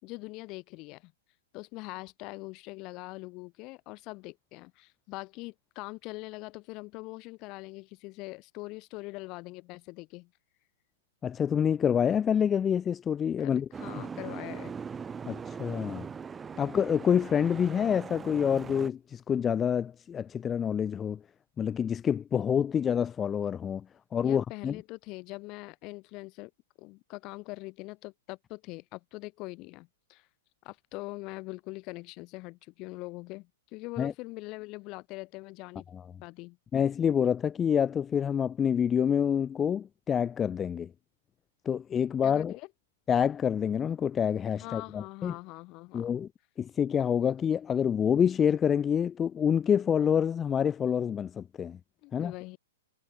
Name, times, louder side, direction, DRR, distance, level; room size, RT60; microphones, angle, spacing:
voice 1, 0.0-1.1 1.5-10.3 13.4-14.7 24.2-26.5 26.8-30.3 30.6-35.8 36.2-36.6 42.2-42.7 44.6-46.2 52.0-52.6, left 24 dB, 40° left, 2.4 m, -42 dB
voice 2, 11.2-13.7 14.0-14.1 15.3-16.1 16.6-21.2 21.6-23.9 24.1-24.8 34.0-34.1 35.9-36.0 36.7-40.9 41.6-42.5 43.1-45.3 45.9-46.3 46.6-51.8 52.1-52.3, left 8 dB, 20° left, 0.9 m, -27 dB
Boat Water vehicle, 13.7-18.9, right 6 dB, 15° right, 1.4 m, -40 dB
hypercardioid pair, 125°, 0 cm